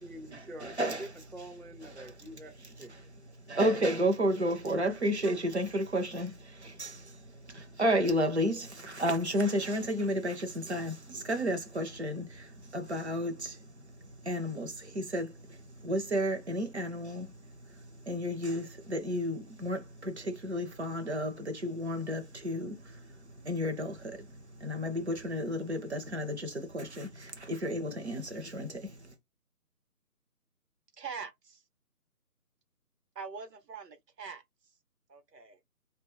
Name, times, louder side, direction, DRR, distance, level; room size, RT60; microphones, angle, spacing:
voice 1, 0.0-2.5 2.8-2.9, right 1 dB, 5° left, 0.3 m, -45 dB
voice 2, 0.6-1.1 2.0-2.1 2.9-3.1 3.5-29.1, equal, 45° right, 0.6 m, -32 dB
voice 3, 31.0-31.6 33.1-34.4 35.1-35.6, right 5 dB, 85° right, 0.9 m, -43 dB
2.5 x 2.2 x 3.0 m
figure-of-eight pair, 180°, 47 cm